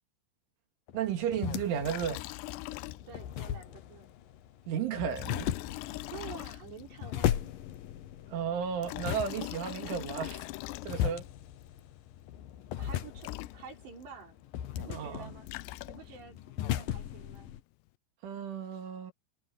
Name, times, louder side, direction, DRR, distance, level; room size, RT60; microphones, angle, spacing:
sound 1, 0.9-17.6, left 11 dB, 70° left, 2.3 m, -38 dB
voice 1, 0.9-2.3 4.7-5.5 8.3-10.4 10.8-11.3 14.9-15.3 18.2-19.1, right 8 dB, 90° right, 5.3 m, -33 dB
Liquid, 1.8-3.3 3.6-3.7 5.1-7.0 8.6-11.3 12.9-13.0 13.2-14.0 15.2-16.3, left 19 dB, 85° left, 2.4 m, -41 dB
voice 2, 3.1-4.1 6.1-7.5 12.8-14.4 14.8-15.5 15.9-17.5, right 6 dB, 65° right, 7.4 m, -48 dB
omnidirectional pair, 5.3 m